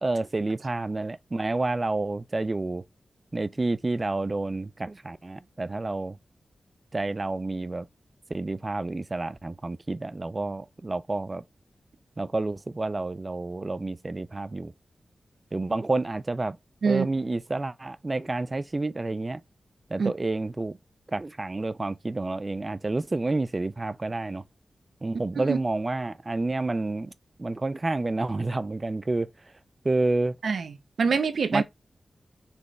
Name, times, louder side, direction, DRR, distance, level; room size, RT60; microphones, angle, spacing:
voice 1, 0.0-2.8 3.3-6.2 6.9-7.9 8.3-11.4 12.2-14.7 15.5-16.6 16.8-19.4 19.9-20.8 21.1-24.4 25.0-27.1 27.4-29.3 29.8-30.4 31.5-31.6, right 2 dB, 35° right, 0.4 m, -29 dB
voice 2, 30.4-31.6, right 5 dB, 80° right, 0.6 m, -25 dB
4.2 x 3.4 x 3.1 m
cardioid pair, 60°, 0 cm